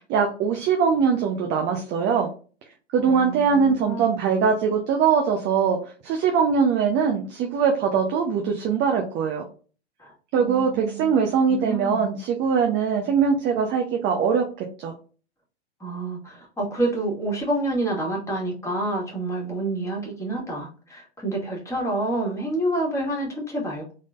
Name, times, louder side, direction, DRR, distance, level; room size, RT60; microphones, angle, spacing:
voice 1, 0.0-2.3 2.9-9.4 10.3-14.9, right 6 dB, 35° right, 3 dB, 0.8 m, -22 dB
voice 2, 3.0-4.4 10.0-11.1 11.5-12.1 15.8-23.9, right 2 dB, 10° left, -2 dB, 1.9 m, -28 dB
3.7 x 3.7 x 2.4 m, 0.37 s
hypercardioid pair, 100°, 34 cm